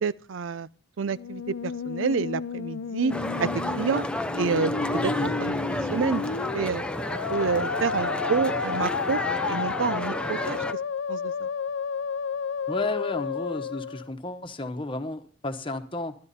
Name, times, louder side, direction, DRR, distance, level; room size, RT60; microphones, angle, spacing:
voice 1, 0.0-0.7 1.0-3.1 3.4-3.5 3.8-4.0 4.4-5.5 5.9-6.2 6.5-6.8 7.3-9.2 9.5-10.6 11.1-11.5, right 5 dB, 80° right, 0.5 m, -28 dB
Musical instrument, 1.1-14.1, left 6 dB, 75° left, 0.5 m, -32 dB
sound 1, 3.1-10.7, left 1 dB, 5° left, 0.6 m, -31 dB
voice 2, 12.7-16.2, left 2 dB, 25° left, 1.2 m, -32 dB
13.0 x 11.5 x 4.2 m
head